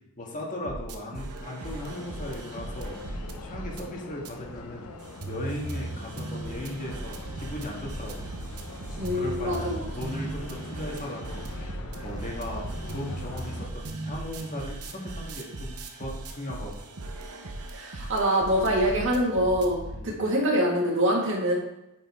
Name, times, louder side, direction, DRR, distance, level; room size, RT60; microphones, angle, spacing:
voice 1, 0.2-4.9 5.3-8.3 9.1-11.4 11.7-17.0 19.9-20.2, left 1 dB, 35° left, -1 dB, 1.7 m, -37 dB
sound 1, 0.6-3.8 4.2-4.3 5.0-20.0, right 2 dB, 85° right, 0.9 m, -38 dB
sound 2, 1.6-13.7, left 2 dB, 85° left, 0.8 m, -42 dB
voice 2, 9.0-9.9 17.7-21.5, equal, 60° right, -2 dB, 2.1 m, -25 dB
9.1 x 5.3 x 3.7 m, 0.92 s
head